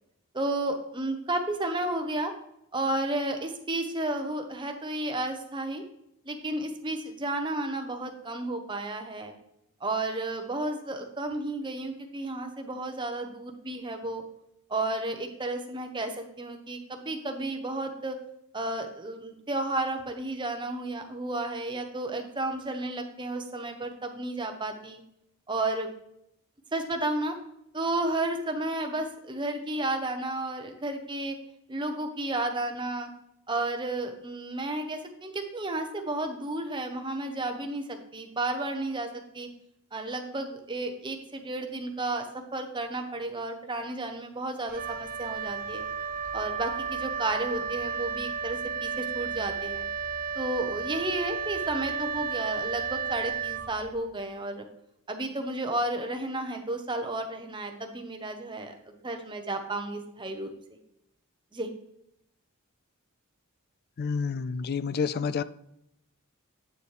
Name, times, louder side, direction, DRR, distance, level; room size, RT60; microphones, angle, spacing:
voice 1, 0.3-2.3 2.7-5.8 6.2-9.3 9.8-14.2 14.7-18.2 18.5-25.0 25.5-25.9 26.7-27.3 27.7-31.4 31.7-33.1 33.5-39.5 39.9-42.3 42.5-45.8 46.3-49.8 50.3-54.7 55.1-60.8 61.5-61.7, right 2 dB, 20° right, 0.9 m, -32 dB
Wind instrument woodwind instrument, 44.7-54.2, right 6 dB, 40° right, 0.5 m, -33 dB
voice 2, 64.0-65.4, left 5 dB, 45° left, 0.3 m, -29 dB
8.8 x 6.9 x 3.3 m
head